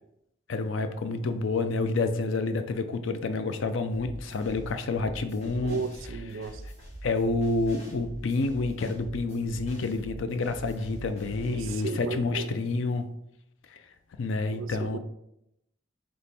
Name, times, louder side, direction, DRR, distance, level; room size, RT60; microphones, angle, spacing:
voice 1, 0.5-5.8 7.0-13.1 13.7-13.8 14.2-15.0, left 3 dB, 65° left, 9 dB, 0.4 m, -29 dB
sound 1, 3.9-11.9, right 1 dB, 30° left, 1.3 m, -44 dB
voice 2, 5.6-6.6 11.5-12.5 14.5-15.0, right 4 dB, 70° right, 10 dB, 0.4 m, -35 dB
4.1 x 3.2 x 3.3 m, 0.80 s
head